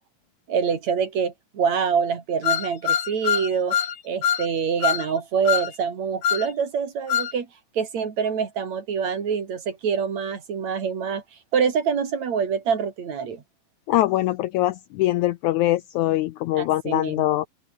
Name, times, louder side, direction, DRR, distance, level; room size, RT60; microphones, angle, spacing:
voice 1, 0.5-3.8 4.0-7.5 7.8-11.2 11.5-13.4 16.6-17.3, right 6 dB, 55° right, 3.9 m, -25 dB
sound 1, 2.4-3.9 4.2-4.5 4.8-5.1 5.4-5.7 6.2-6.5 7.1-7.3, left 9 dB, 50° left, 2.3 m, -23 dB
voice 2, 13.9-17.5, left 15 dB, 80° left, 1.8 m, -23 dB
open air
omnidirectional pair, 4.0 m